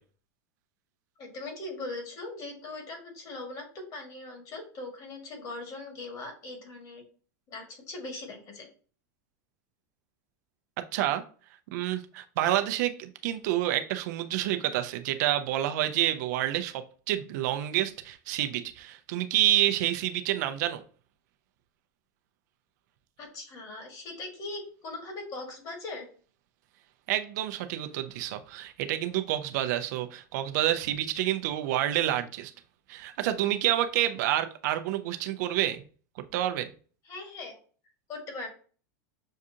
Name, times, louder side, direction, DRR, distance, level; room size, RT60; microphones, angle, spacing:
voice 1, 1.2-7.0 7.5-8.7 23.2-26.1 37.0-37.6 38.1-38.5, left 2 dB, 40° left, 2 dB, 1.9 m, -40 dB
voice 2, 10.9-11.2 11.7-20.8 27.1-32.5 32.9-35.8 36.3-36.7, right 13 dB, 65° right, 8 dB, 0.6 m, -28 dB
6.4 x 2.4 x 2.8 m, 0.40 s
hypercardioid pair, 115°, 10 cm